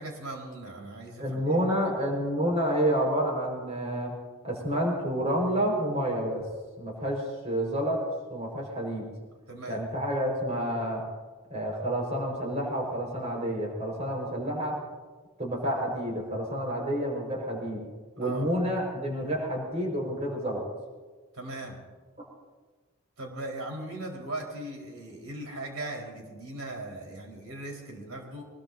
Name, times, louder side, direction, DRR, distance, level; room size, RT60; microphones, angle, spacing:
voice 1, 0.0-1.6 9.5-9.8 18.2-18.5 21.3-21.8 23.2-28.4, right 2 dB, 85° right, 0 dB, 4.5 m, -38 dB
voice 2, 1.2-4.1 4.4-6.4 6.8-8.0 8.3-9.0 9.7-11.0 11.5-14.8 15.4-17.8 18.2-20.6, equal, 35° right, -1 dB, 4.8 m, -29 dB
24.5 x 21.0 x 2.7 m, 1.4 s
head